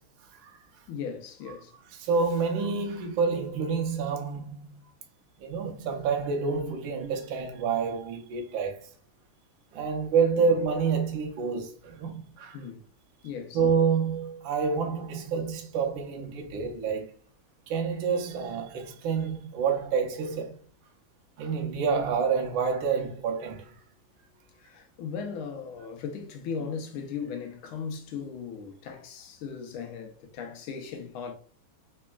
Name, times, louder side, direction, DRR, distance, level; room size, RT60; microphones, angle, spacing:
voice 1, 0.9-1.7 12.5-12.8 13.2-13.6 24.6-31.3, left 6 dB, 80° left, 1.5 m, -37 dB
voice 2, 2.0-4.7 5.4-8.9 9.7-12.6 13.5-17.1 17.7-20.5 21.4-23.7, right 5 dB, 70° right, 1.5 m, -28 dB
3.9 x 3.3 x 2.3 m
omnidirectional pair, 2.3 m